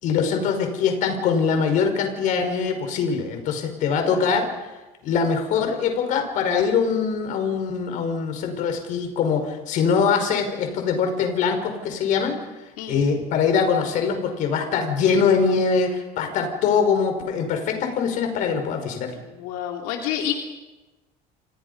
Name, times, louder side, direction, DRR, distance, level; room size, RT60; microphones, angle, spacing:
voice 1, 0.0-4.5 5.0-12.4 12.9-19.1, left 6 dB, 50° left, 5 dB, 5.3 m, -23 dB
voice 2, 12.8-13.1 19.1-20.3, left 10 dB, 80° left, 2 dB, 3.3 m, -29 dB
30.0 x 27.5 x 5.5 m, 1.1 s
cardioid pair, 160°, 17 cm